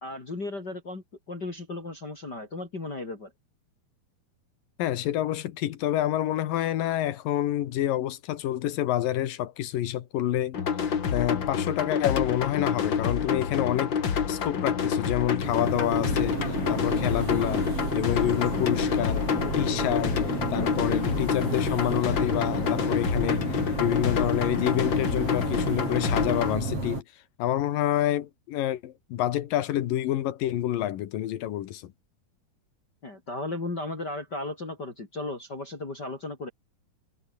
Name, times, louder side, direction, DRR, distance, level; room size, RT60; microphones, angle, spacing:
voice 1, 0.0-3.3 33.0-36.5, left 2 dB, 25° left, 3.8 m, -35 dB
voice 2, 4.8-10.6 11.1-14.0 14.3-17.7 17.9-19.3 19.6-20.2 20.5-23.4 23.8-27.0 27.4-31.9, left 12 dB, 65° left, 2.8 m, -28 dB
sound 1, 10.5-26.5, left 7 dB, 40° left, 1.8 m, -28 dB
sound 2, 15.4-27.0, right 3 dB, 35° right, 8.4 m, -32 dB
omnidirectional pair, 4.5 m